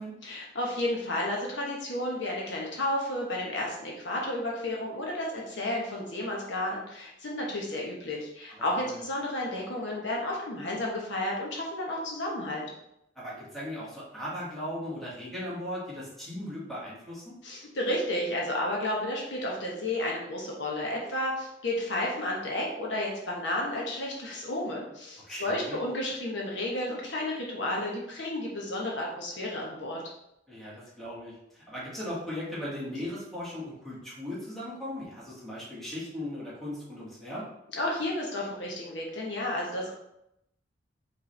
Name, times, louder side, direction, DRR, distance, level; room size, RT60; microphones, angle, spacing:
voice 1, 0.2-12.7 17.4-30.0 37.7-39.9, left 1 dB, 70° left, -2 dB, 1.0 m, -32 dB
voice 2, 13.1-17.3 25.2-25.8 30.5-37.5, left 1 dB, ahead, -8 dB, 1.6 m, -38 dB
4.9 x 3.3 x 3.2 m, 0.81 s
head